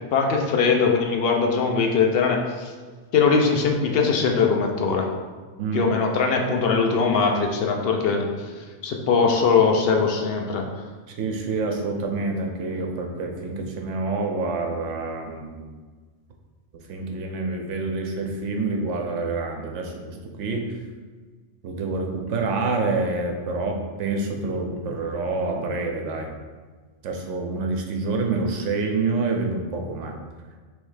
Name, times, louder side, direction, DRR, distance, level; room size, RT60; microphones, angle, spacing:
voice 1, 0.1-2.7 3.1-5.1 5.7-8.2 8.8-10.6, left 5 dB, 60° left, 2 dB, 0.7 m, -21 dB
voice 2, 5.6-5.9 11.1-15.7 16.9-20.7 21.6-26.3 27.0-30.2, right 3 dB, 70° right, 2 dB, 1.0 m, -27 dB
3.4 x 3.1 x 4.8 m, 1.5 s
omnidirectional pair, 1.3 m